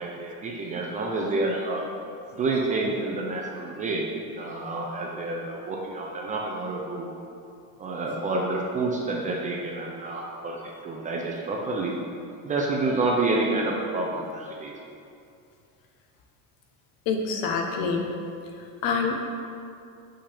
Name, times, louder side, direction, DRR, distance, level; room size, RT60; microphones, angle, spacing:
voice 1, 0.0-1.8 2.3-4.0 4.4-7.1 7.8-11.9 12.4-14.7, right 2 dB, 25° right, -1 dB, 0.3 m, -28 dB
voice 2, 17.1-18.1 18.8-19.2, left 5 dB, 70° left, 3 dB, 0.9 m, -26 dB
6.5 x 5.6 x 3.4 m, 2.5 s
cardioid pair, 180°, 37 cm